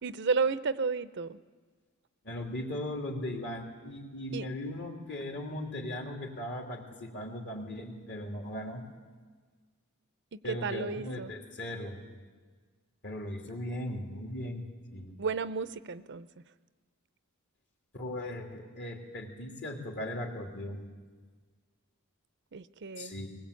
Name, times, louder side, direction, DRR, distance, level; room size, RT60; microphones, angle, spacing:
voice 1, 0.0-1.4 4.3-4.5 10.3-11.3 15.2-16.3 22.5-23.1, right 5 dB, 50° right, 14 dB, 0.6 m, -32 dB
voice 2, 2.2-8.8 10.4-12.0 13.0-15.2 17.9-20.8 23.0-23.3, left 1 dB, 50° left, 1 dB, 3.2 m, -38 dB
20.5 x 20.5 x 8.4 m, 1.5 s
head